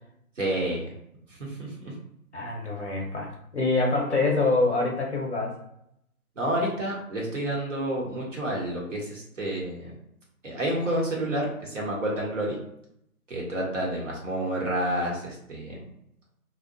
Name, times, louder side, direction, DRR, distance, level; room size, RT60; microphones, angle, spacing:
voice 1, 0.4-0.9 1.5-1.9 6.4-10.0 10.4-12.6 13.3-15.8, right 1 dB, 55° right, -2 dB, 1.0 m, -29 dB
voice 2, 2.3-5.5, left 3 dB, 50° left, -1 dB, 0.6 m, -25 dB
2.6 x 2.1 x 2.5 m, 0.75 s
hypercardioid pair, 175°, 45 cm